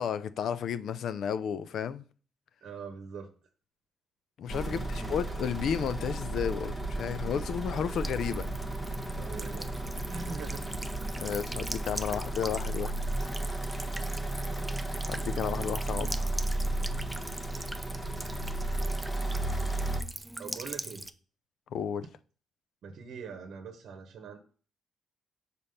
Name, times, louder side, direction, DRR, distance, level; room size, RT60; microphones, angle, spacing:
voice 1, 0.0-2.0 4.4-4.8 5.1-8.5 11.2-13.0 15.1-16.6 21.7-22.0, left 8 dB, 70° left, 0.4 m, -32 dB
voice 2, 2.6-3.3 4.7-5.2 9.2-9.7 10.0-10.7 15.4-15.8 16.8-16.9 18.1-18.6 20.4-21.0 22.8-24.4, right 5 dB, 65° right, 0.9 m, -43 dB
sound 1, 4.5-20.0, right 2 dB, 10° left, 1.0 m, -34 dB
Buzz / Water tap faucet / Trickle dribble, 7.9-21.1, right 1 dB, 10° right, 0.4 m, -42 dB
5.2 x 4.1 x 5.6 m
cardioid pair, 95°, 0 cm